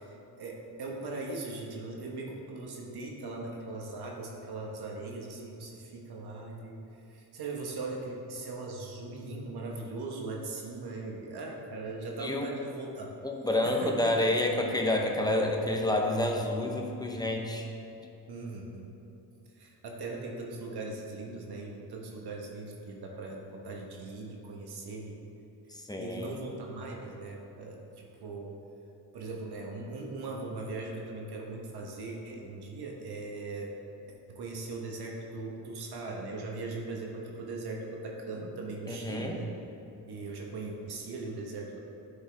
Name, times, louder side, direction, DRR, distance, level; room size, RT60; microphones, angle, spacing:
voice 1, 0.0-6.8 7.1-13.1 13.6-14.2 18.3-18.9 19.6-25.3 26.0-28.6 29.1-33.7 34.3-39.5 40.1-41.8, right 3 dB, 65° right, -1 dB, 1.2 m, -39 dB
voice 2, 13.2-17.6 25.7-26.4 38.9-39.4, left 1 dB, 10° left, 1 dB, 0.8 m, -29 dB
9.9 x 5.5 x 3.4 m, 2.9 s
cardioid pair, 110°, 42 cm